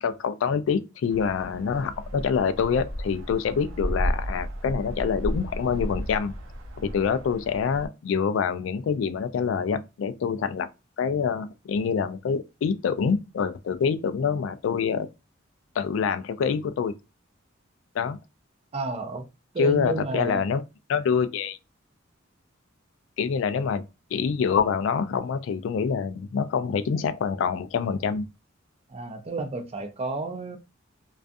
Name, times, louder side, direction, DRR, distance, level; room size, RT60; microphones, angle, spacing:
voice 1, 0.0-6.3 6.8-10.7 11.0-15.1 15.8-16.9 17.9-18.2 19.6-20.6 20.9-21.6 23.2-23.8 24.1-28.3, left 6 dB, 70° left, 0.3 m, -26 dB
sound 1, 1.1-7.9, equal, 85° right, 0.6 m, -33 dB
voice 2, 18.7-19.3 19.5-20.5 28.9-30.6, right 3 dB, 30° right, 0.4 m, -31 dB
2.4 x 2.3 x 2.5 m
head